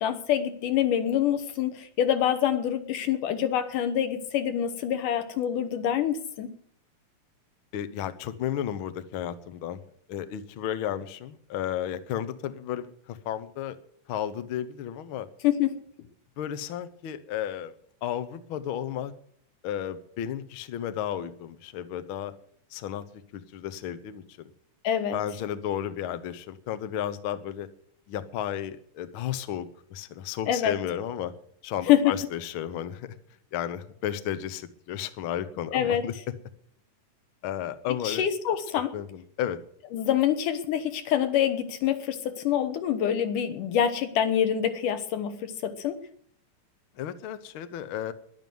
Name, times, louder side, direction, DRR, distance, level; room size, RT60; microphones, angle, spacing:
voice 1, 0.0-6.5 15.4-15.8 24.8-25.2 30.5-30.7 31.9-32.1 35.7-36.0 38.0-38.9 39.9-46.0, left 10 dB, 85° left, 9 dB, 2.9 m, -26 dB
voice 2, 7.7-9.8 10.1-13.8 14.1-15.3 16.4-17.7 18.0-19.1 19.6-22.3 22.7-23.0 23.3-24.5 25.1-27.7 28.1-31.3 31.6-33.1 33.5-36.1 37.4-38.3 38.9-39.6 47.0-48.1, left 10 dB, 65° left, 12 dB, 1.4 m, -33 dB
11.0 x 11.0 x 9.3 m, 0.64 s
omnidirectional pair, 3.6 m